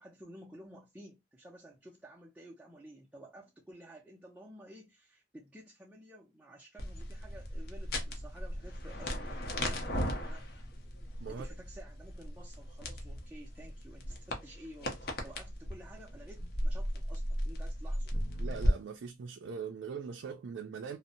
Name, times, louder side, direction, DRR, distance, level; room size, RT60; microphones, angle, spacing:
voice 1, 0.0-10.6 11.3-18.1, right 1 dB, 5° right, 0.4 m, -52 dB
sound 1, 6.8-18.7, equal, 55° left, 0.6 m, -36 dB
voice 2, 18.4-21.0, right 6 dB, 75° right, 0.4 m, -41 dB
2.6 x 2.0 x 2.6 m
head